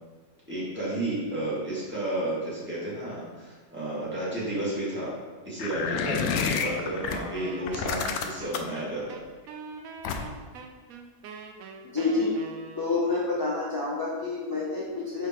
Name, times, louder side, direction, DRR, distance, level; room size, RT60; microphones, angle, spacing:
voice 1, 0.5-5.1 5.4-9.2, right 1 dB, 10° right, -8 dB, 1.8 m, -32 dB
sound 1, 5.6-7.2 7.7-8.8 10.0-10.5, left 6 dB, 90° left, 1.1 m, -29 dB
Wind instrument woodwind instrument, 7.3-13.2, right 5 dB, 75° right, 1.0 m, -43 dB
voice 2, 11.8-12.3 12.8-15.3, left 3 dB, 25° left, -5 dB, 0.5 m, -28 dB
5.0 x 4.6 x 4.4 m, 1.4 s
omnidirectional pair, 1.5 m